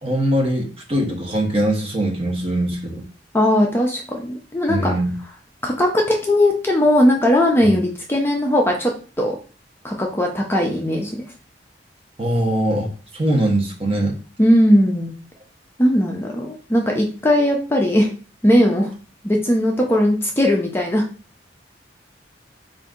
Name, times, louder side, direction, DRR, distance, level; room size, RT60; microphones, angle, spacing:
voice 1, 0.0-3.0 4.7-5.1 7.6-7.8 12.2-14.1, right 1 dB, 30° right, 0 dB, 0.9 m, -21 dB
voice 2, 3.3-4.9 5.6-9.4 9.8-11.2 14.4-15.1 15.8-18.1 18.4-18.9 19.2-21.0, equal, 15° left, 0 dB, 0.4 m, -18 dB
3.8 x 2.5 x 3.6 m, 0.37 s
head